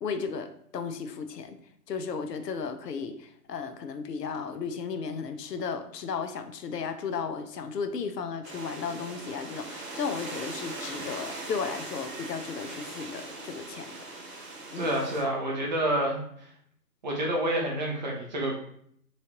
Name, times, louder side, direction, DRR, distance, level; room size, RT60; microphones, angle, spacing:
voice 1, 0.0-1.6 1.9-14.4 14.7-14.9, left 5 dB, 90° left, 8 dB, 0.7 m, -35 dB
sound 1, 8.4-15.2, right 2 dB, 60° right, 1.5 m, -40 dB
voice 2, 14.8-16.5 17.0-18.6, right 1 dB, 30° right, -2 dB, 0.8 m, -28 dB
3.9 x 3.1 x 2.9 m, 0.66 s
hypercardioid pair, 155°, 47 cm